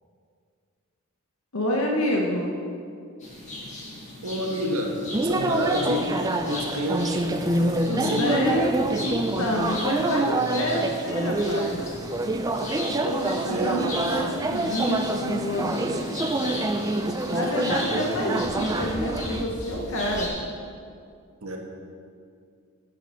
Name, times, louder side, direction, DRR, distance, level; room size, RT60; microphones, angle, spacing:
voice 1, 1.5-2.5 7.9-11.8 12.9-15.7 17.3-20.3, equal, 70° left, -1 dB, 0.9 m, -28 dB
sound 1, 3.2-20.3, left 1 dB, 35° left, 1.8 m, -36 dB
voice 2, 4.2-6.1 6.5-7.3 7.9-8.6 13.5-14.2 17.7-18.1 21.4-21.6, equal, 80° right, 1 dB, 1.3 m, -29 dB
sound 2, 5.1-19.4, right 2 dB, 15° right, 0.4 m, -27 dB
7.8 x 6.6 x 6.4 m, 2.3 s
head